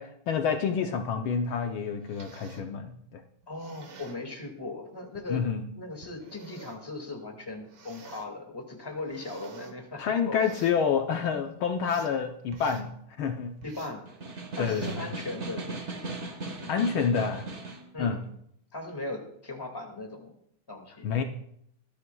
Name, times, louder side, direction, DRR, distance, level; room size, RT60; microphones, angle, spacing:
voice 1, 0.0-3.2 5.3-5.7 10.0-12.9 13.2-13.6 14.6-14.9 16.7-17.5 18.0-18.2 21.0-21.2, left 6 dB, 70° left, 5 dB, 1.6 m, -28 dB
sound 1, 1.8-2.7 3.4-4.2 5.1-5.3 6.0-6.9 7.6-8.3 8.8-9.8 10.3-10.8 11.4-12.2 12.5-12.9 13.6-14.0 14.5-15.1 15.6-15.8, right 4 dB, 65° right, 2.2 m, -50 dB
voice 2, 3.5-5.4 5.7-10.6 13.6-14.0 14.6-16.0 17.9-18.2 18.7-20.4 20.7-21.2, left 2 dB, 10° left, 2 dB, 2.0 m, -38 dB
Snare drum, 14.1-17.9, right 3 dB, 35° right, 1.5 m, -38 dB
19.5 x 12.5 x 2.3 m, 0.70 s
omnidirectional pair, 2.4 m